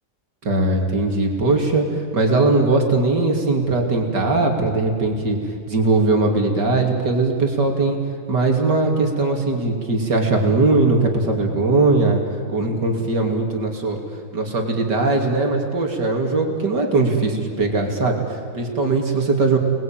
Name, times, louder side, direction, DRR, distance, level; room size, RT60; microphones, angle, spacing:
voice 1, 0.4-5.4 5.7-8.0 8.3-12.2 12.5-14.0 14.3-19.6, right 3 dB, 70° right, 2 dB, 3.6 m, -20 dB
29.5 x 20.5 x 9.1 m, 2.3 s
omnidirectional pair, 1.9 m